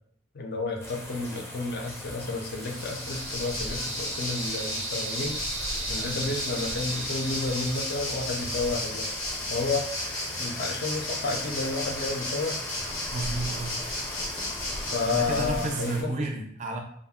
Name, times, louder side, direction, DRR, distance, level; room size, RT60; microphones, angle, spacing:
voice 1, 0.3-5.4 5.9-9.1 9.5-9.9 10.4-12.6 14.9-16.3, left 3 dB, 55° left, 2 dB, 0.5 m, -31 dB
sound 1, 0.8-16.0, left 1 dB, 15° left, 0.7 m, -40 dB
sound 2, 2.1-9.0, right 4 dB, 90° right, 0.6 m, -39 dB
Waves surf, 2.6-15.9, left 1 dB, 90° left, 0.8 m, -34 dB
voice 2, 13.1-13.7 15.1-16.8, right 3 dB, 40° right, 3 dB, 0.4 m, -32 dB
2.4 x 2.0 x 3.5 m, 0.66 s
head